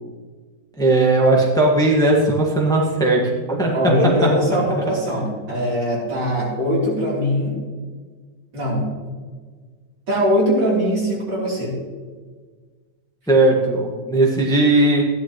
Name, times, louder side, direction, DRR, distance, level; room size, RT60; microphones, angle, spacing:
voice 1, 0.8-3.2 3.5-3.7 13.3-15.0, right 2 dB, ahead, -2 dB, 1.5 m, -17 dB
voice 2, 3.7-7.6 8.5-8.9 10.1-11.7, equal, 75° right, -5 dB, 4.1 m, -21 dB
14.5 x 11.0 x 3.1 m, 1.5 s
omnidirectional pair, 2.0 m